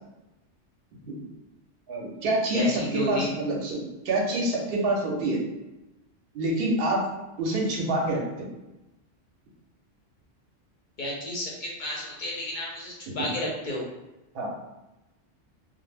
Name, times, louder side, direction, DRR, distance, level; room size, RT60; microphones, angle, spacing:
voice 1, 1.9-5.5 6.3-7.1 7.4-8.5 14.3-14.5, right 1 dB, 60° right, -1 dB, 0.8 m, -27 dB
voice 2, 2.5-3.3 11.0-13.8, left 1 dB, 55° left, -3 dB, 0.6 m, -32 dB
2.1 x 2.0 x 3.2 m, 0.99 s
omnidirectional pair, 1.2 m